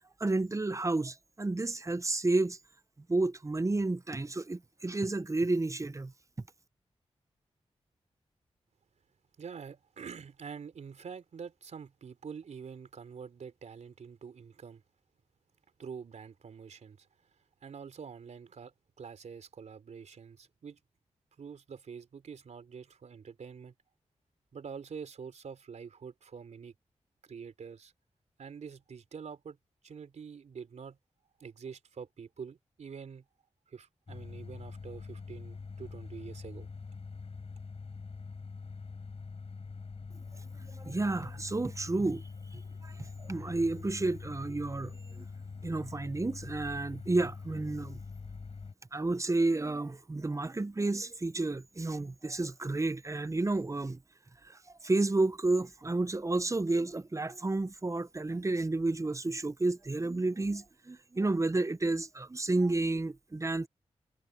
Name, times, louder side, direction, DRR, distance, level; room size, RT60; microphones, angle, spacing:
voice 1, 0.2-2.6 3.1-6.1 40.7-45.3 45.6-48.0 48.9-54.0 54.4-63.7, right 2 dB, 25° right, 0.8 m, -31 dB
voice 2, 9.4-14.8 15.8-17.1 17.6-20.8 21.4-23.7 24.5-26.7 27.2-27.9 28.4-29.6 29.8-31.0 31.4-33.2 33.7-36.7, right 6 dB, 80° right, 3.6 m, -46 dB
sound 1, 34.1-48.7, left 4 dB, 60° left, 6.6 m, -44 dB
cardioid pair, 55°, 12 cm